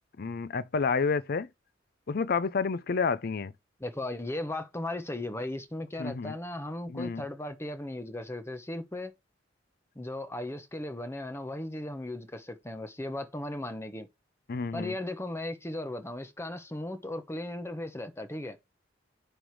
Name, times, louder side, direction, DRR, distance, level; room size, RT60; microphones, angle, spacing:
voice 1, 0.2-1.5 2.1-3.5 6.0-6.3 6.9-7.2 14.5-14.9, left 5 dB, 55° left, 0.5 m, -29 dB
voice 2, 3.8-9.1 9.9-14.1 14.7-18.6, left 1 dB, 15° left, 1.0 m, -36 dB
10.0 x 3.4 x 4.7 m
head